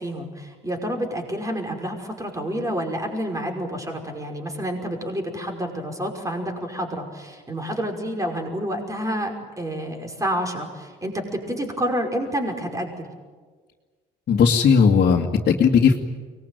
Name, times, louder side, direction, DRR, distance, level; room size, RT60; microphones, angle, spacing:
voice 1, 0.0-13.1, equal, 15° right, 3 dB, 5.6 m, -29 dB
voice 2, 14.3-16.0, left 6 dB, 55° left, -1 dB, 2.1 m, -17 dB
24.0 x 20.5 x 9.3 m, 1.5 s
supercardioid pair, 80°, 19 cm